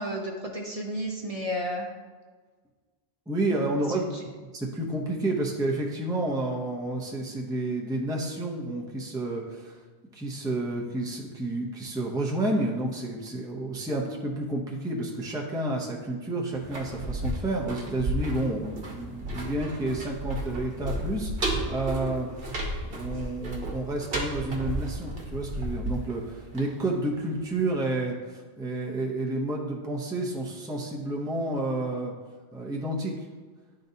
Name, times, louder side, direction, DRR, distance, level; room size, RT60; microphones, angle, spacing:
voice 1, 0.0-1.9 3.9-4.3, equal, 40° right, 0 dB, 0.7 m, -32 dB
voice 2, 3.3-4.0 4.5-9.8 10.1-22.6 22.9-32.1 32.5-33.1, right 2 dB, 5° right, -1 dB, 0.6 m, -30 dB
sound 1, 16.5-27.3 27.6-27.7, right 1 dB, 65° right, 1.1 m, -33 dB
10.5 x 3.9 x 2.7 m, 1.4 s
omnidirectional pair, 1.1 m